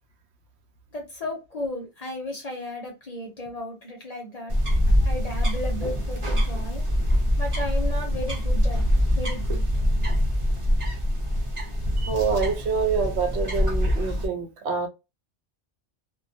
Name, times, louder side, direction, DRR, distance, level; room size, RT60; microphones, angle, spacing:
voice 1, 0.9-4.5 4.9-6.9 7.4-9.9, left 1 dB, 45° left, 0.6 m, -35 dB
sound 1, 4.5-14.3, equal, 30° right, 0.7 m, -24 dB
voice 2, 12.1-14.9, right 5 dB, 75° right, 0.8 m, -26 dB
2.2 x 2.2 x 2.6 m
omnidirectional pair, 1.2 m